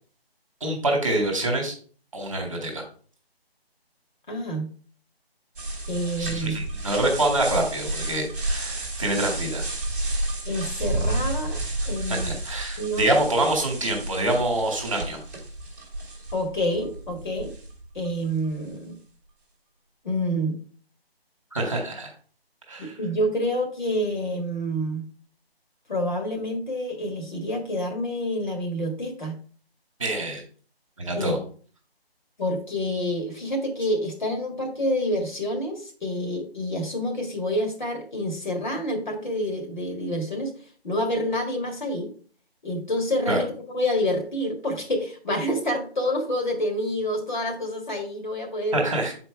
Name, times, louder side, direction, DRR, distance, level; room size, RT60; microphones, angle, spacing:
voice 1, 0.6-1.7 2.1-2.8 6.2-9.6 12.1-15.2 21.5-22.1 22.7-22.9 30.0-30.4 31.0-31.4 43.3-43.4 48.7-49.1, right 1 dB, 30° right, 2 dB, 1.5 m, -26 dB
voice 2, 4.3-4.7 5.9-6.5 10.4-12.3 12.8-13.1 16.3-17.5 17.9-19.0 20.0-20.6 22.8-25.0 25.9-29.4 31.2-31.3 32.4-40.5 40.8-42.1 42.6-43.5 43.7-48.9, equal, 50° left, 2 dB, 1.8 m, -28 dB
sound 1, 5.6-18.1, right 2 dB, 15° right, 1.3 m, -31 dB
6.4 x 4.5 x 4.5 m, 0.42 s
figure-of-eight pair, 175°, 31 cm